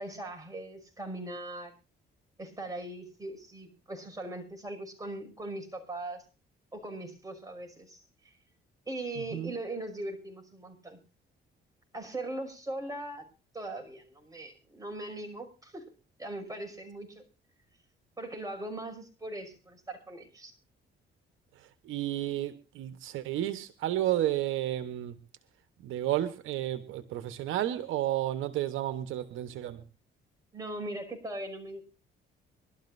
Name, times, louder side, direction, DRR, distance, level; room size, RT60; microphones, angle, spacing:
voice 1, 0.0-1.7 2.4-6.3 6.7-8.4 8.9-11.0 11.9-13.2 13.5-15.9 16.2-17.2 18.2-20.5 30.5-31.8, right 1 dB, 15° right, 3 dB, 5.8 m, -40 dB
voice 2, 21.8-25.2 25.8-29.8, right 13 dB, 85° right, 11 dB, 1.1 m, -32 dB
23.5 x 13.0 x 2.6 m, 0.33 s
cardioid pair, 90°, 20 cm